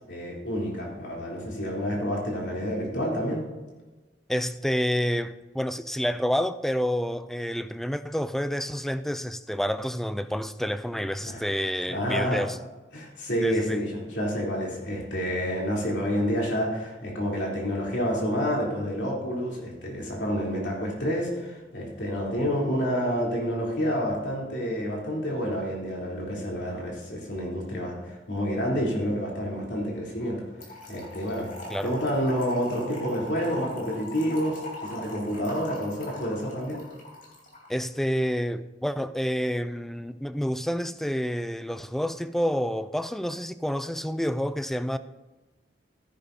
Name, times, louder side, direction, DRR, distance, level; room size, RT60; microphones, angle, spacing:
voice 1, 0.1-3.4 11.2-11.4 11.9-12.4 12.9-30.5 30.9-31.5 31.8-36.8, equal, 70° left, 3.4 m, -29 dB
voice 2, 4.3-12.6 13.4-13.8 31.7-31.9 37.7-45.0, equal, ahead, 0.3 m, -29 dB
Trickle dribble / Fill (with liquid), 30.6-37.7, left 2 dB, 50° left, 3.4 m, -41 dB
15.0 x 10.0 x 2.8 m
head